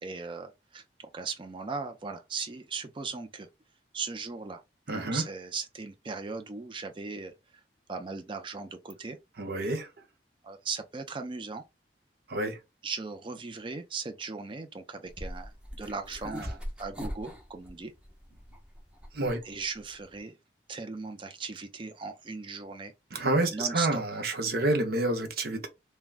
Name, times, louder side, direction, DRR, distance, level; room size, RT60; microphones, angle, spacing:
voice 1, 0.0-0.8 1.1-3.5 3.9-4.6 4.9-7.3 7.9-9.2 10.4-11.6 12.8-17.9 19.4-20.4 20.7-22.9 23.5-24.0, right 4 dB, 30° right, 0.4 m, -38 dB
voice 2, 4.9-5.2 9.4-9.9 12.3-12.6 19.1-19.4 23.1-25.7, right 2 dB, 60° right, 0.7 m, -28 dB
sound 1, 15.1-20.2, equal, 5° right, 0.8 m, -41 dB
3.5 x 2.1 x 2.4 m
head